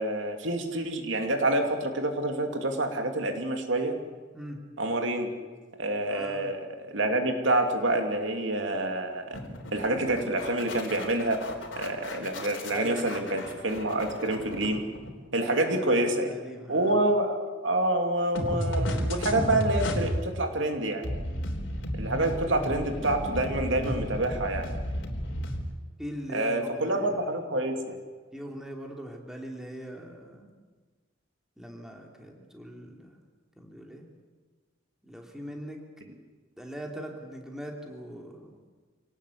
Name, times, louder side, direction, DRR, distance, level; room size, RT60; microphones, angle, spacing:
voice 1, 0.0-4.0 4.8-5.3 5.8-9.4 9.7-11.4 11.8-14.8 15.3-16.3 16.7-21.0 22.0-24.7 26.3-28.0, right 1 dB, 75° right, 4 dB, 2.8 m, -27 dB
voice 2, 6.1-6.5 12.7-13.3 15.6-17.0 26.0-27.3 28.3-30.5 31.6-33.2 33.6-34.1 35.0-35.8 36.6-38.7, equal, 5° right, 1 dB, 3.0 m, -41 dB
sound 1, 9.3-15.3 18.3-20.2 21.0-25.6, equal, 75° left, 3.5 m, -33 dB
26.5 x 18.5 x 8.5 m, 1.4 s
head